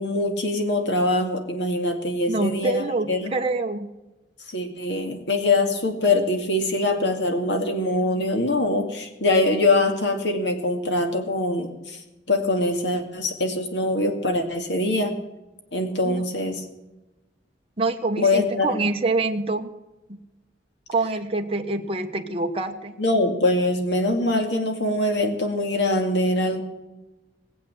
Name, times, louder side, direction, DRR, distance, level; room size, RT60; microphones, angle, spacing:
voice 1, 0.0-3.3 4.5-12.0 12.3-15.2 15.7-16.6 18.2-18.7 23.0-26.6, left 2 dB, 70° left, 5 dB, 2.3 m, -23 dB
voice 2, 2.3-3.9 16.0-16.2 17.8-19.7 20.1-20.2 20.9-23.0, right 3 dB, 30° right, 3 dB, 1.1 m, -26 dB
19.5 x 8.0 x 7.7 m, 1.0 s
head